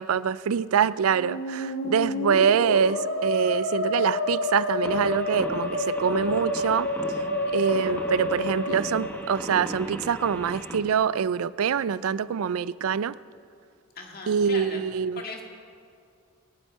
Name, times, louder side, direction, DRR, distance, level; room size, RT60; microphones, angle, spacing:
voice 1, 0.0-6.9 7.5-13.1 14.3-15.2, right 7 dB, 90° right, 0.4 m, -25 dB
Musical instrument, 1.1-9.8, left 2 dB, 85° left, 2.2 m, -29 dB
sound 1, 4.8-10.8, equal, 10° left, 1.3 m, -37 dB
voice 2, 14.0-14.9 15.2-15.4, left 3 dB, 45° left, 1.9 m, -38 dB
21.5 x 11.0 x 4.6 m
head